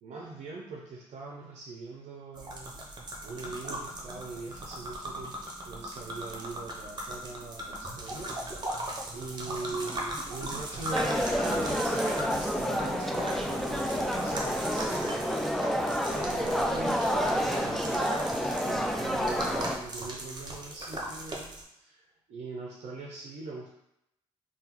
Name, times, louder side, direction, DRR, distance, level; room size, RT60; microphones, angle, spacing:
voice 1, 0.0-2.9 3.2-8.9 9.1-23.7, right 3 dB, 65° right, -2 dB, 0.5 m, -42 dB
sound 1, 2.3-21.6, right 1 dB, 35° right, 0.8 m, -39 dB
sound 2, 10.9-19.8, equal, ahead, 0.4 m, -29 dB
3.6 x 2.3 x 2.9 m, 0.81 s
supercardioid pair, 65°, 12 cm